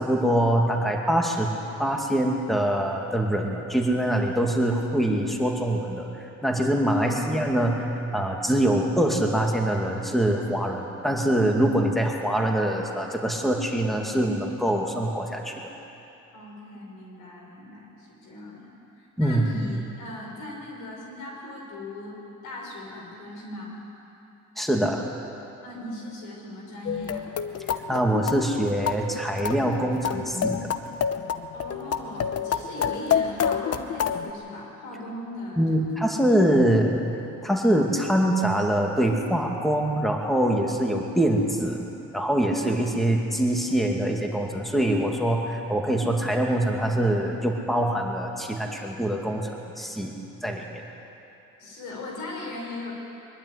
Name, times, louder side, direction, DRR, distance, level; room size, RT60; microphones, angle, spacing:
voice 1, 0.0-1.5 1.8-15.7 19.2-19.5 24.6-25.0 27.9-30.7 35.6-37.0 37.4-41.9 42.1-50.1 50.4-50.8, right 1 dB, ahead, 1 dB, 2.4 m, -24 dB
voice 2, 6.9-7.3 16.3-22.2 22.4-23.7 25.6-27.3 31.5-36.1 51.6-52.9, left 2 dB, 90° left, -1 dB, 5.5 m, -38 dB
sound 1, 26.9-34.3, left 7 dB, 55° left, 0.9 m, -28 dB
22.5 x 12.0 x 9.7 m, 2.9 s
cardioid pair, 90°, 30 cm